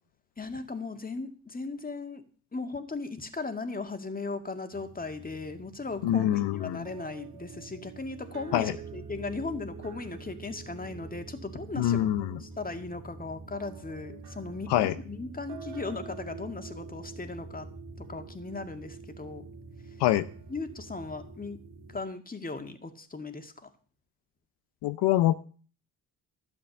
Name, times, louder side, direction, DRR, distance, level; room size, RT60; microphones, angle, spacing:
voice 1, 0.4-2.3 2.5-17.7 18.0-19.5 20.5-21.6 21.9-23.5, left 3 dB, 20° left, 7 dB, 2.1 m, -37 dB
sound 1, 4.7-22.0, right 4 dB, 65° right, 2.7 m, -45 dB
voice 2, 6.0-6.9 8.5-8.7 11.8-12.4 14.7-14.9 20.0-20.2 24.8-25.3, left 13 dB, 75° left, 12 dB, 0.8 m, -25 dB
12.5 x 7.6 x 7.0 m, 0.42 s
supercardioid pair, 60°, 41 cm